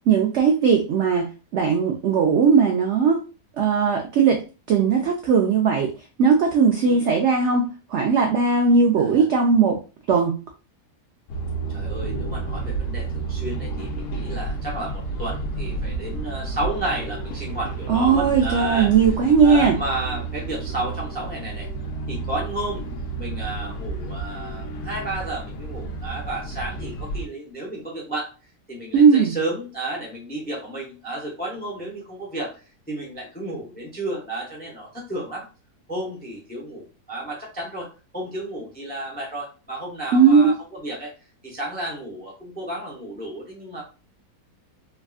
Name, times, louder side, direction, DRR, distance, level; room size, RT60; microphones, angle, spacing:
voice 1, 0.1-3.2 3.6-4.4 4.7-5.9 6.2-7.6 7.9-9.8 10.1-10.4 17.9-19.8 28.9-29.3 40.1-40.5, right 5 dB, 75° right, 2 dB, 0.6 m, -18 dB
sound 1, 11.3-27.3, right 3 dB, 80° left, 1.1 m, -31 dB
voice 2, 11.7-18.9 19.4-21.7 22.1-22.9 23.2-28.3 28.7-32.6 32.9-35.4 35.9-41.1 41.4-43.8, right 1 dB, 10° left, -3 dB, 0.5 m, -32 dB
3.5 x 2.4 x 2.3 m, 0.33 s
omnidirectional pair, 1.7 m